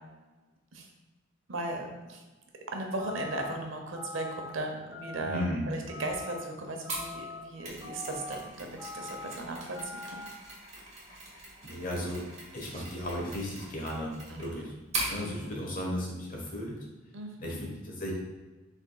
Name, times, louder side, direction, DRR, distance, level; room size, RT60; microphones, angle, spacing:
voice 1, 1.5-2.2 2.7-10.2 12.7-12.8 14.3-14.7 15.1-15.6 17.1-17.7, right 2 dB, 80° right, 2 dB, 0.8 m, -37 dB
sound 1, 3.0-3.5 3.9-4.5 4.9-5.5 5.9-6.4 6.8-7.4 7.8-8.3 8.8-9.3 9.7-10.3, left 3 dB, 15° right, 0.8 m, -43 dB
voice 2, 5.2-5.6 11.6-12.2 12.5-14.7 15.1-16.8 17.4-18.1, left 1 dB, 45° left, -2 dB, 1.2 m, -35 dB
Mechanisms, 6.9-15.2, right 2 dB, 35° right, 1.2 m, -41 dB
6.6 x 3.5 x 2.3 m, 1.2 s
head